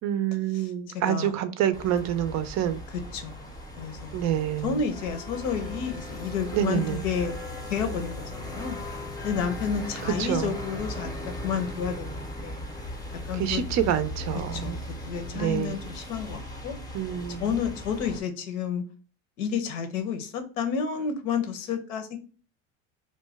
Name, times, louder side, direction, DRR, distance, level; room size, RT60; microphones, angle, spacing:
voice 1, 0.0-2.8 4.1-4.7 6.5-7.0 10.2-10.5 13.4-14.8 15.3-15.7 16.9-17.4, right 10 dB, 50° right, 0.4 m, -27 dB
voice 2, 0.5-1.6 2.9-3.3 3.8-4.2 4.6-7.3 7.7-8.8 9.2-12.2 12.4-12.6 13.3-13.6 14.5-14.8 15.0-16.7 17.4-18.8 19.4-22.2, left 6 dB, 80° left, 0.8 m, -31 dB
sound 1, 1.7-18.2, left 1 dB, 10° left, 0.6 m, -38 dB
2.7 x 2.2 x 3.2 m
supercardioid pair, 95°, 37 cm